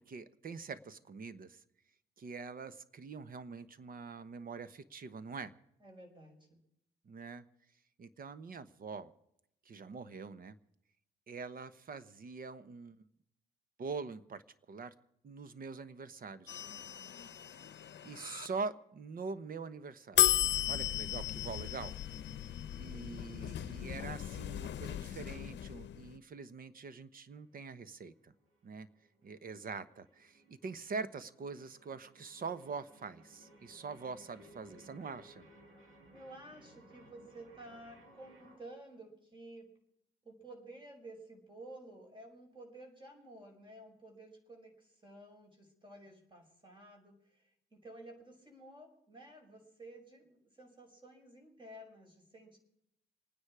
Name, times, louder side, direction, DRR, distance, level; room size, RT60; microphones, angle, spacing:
voice 1, 0.0-1.6 2.2-5.5 7.1-7.4 8.0-9.1 9.6-10.5 11.3-13.1 13.8-14.4 14.7-14.9 15.2-16.6 18.0-20.3 20.7-21.9 22.8-28.3 28.6-28.9 29.2-35.4, right 4 dB, 45° right, 13 dB, 1.1 m, -44 dB
voice 2, 5.8-6.6 22.9-23.4 36.1-39.7 40.2-52.6, right 1 dB, 25° right, 2 dB, 5.5 m, -53 dB
sound 1, 16.5-18.5 20.2-26.2, left 13 dB, 65° left, 0.8 m, -35 dB
sound 2, 27.3-38.6, right 1 dB, 80° right, 6.0 m, -61 dB
27.0 x 9.7 x 4.9 m, 0.78 s
cardioid pair, 90°, 20 cm